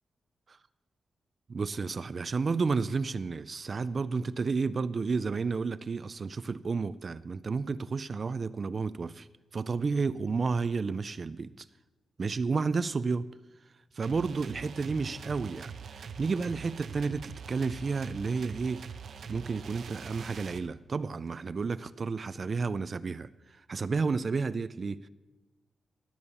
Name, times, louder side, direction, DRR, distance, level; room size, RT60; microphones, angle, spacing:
voice 1, 1.5-9.3 9.5-11.7 12.2-13.3 13.9-18.8 19.3-25.1, right 4 dB, 40° right, 0.4 m, -31 dB
sound 1, 14.0-20.6, right 6 dB, 70° right, 0.8 m, -43 dB
17.5 x 7.1 x 7.1 m
wide cardioid pair, 120°, 0 cm